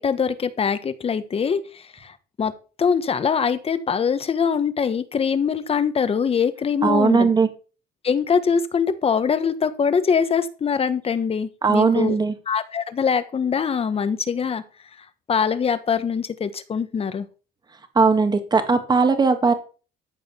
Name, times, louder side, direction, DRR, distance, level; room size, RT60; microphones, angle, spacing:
voice 1, 0.0-2.5 2.8-7.3 8.0-12.2 12.5-14.6 15.0-17.3, left 6 dB, 35° left, 12 dB, 1.3 m, -23 dB
voice 2, 6.8-7.5 11.6-12.3 18.0-19.5, right 4 dB, 25° right, 8 dB, 1.9 m, -18 dB
13.5 x 5.2 x 6.9 m, 0.36 s
cardioid pair, 110°, 17 cm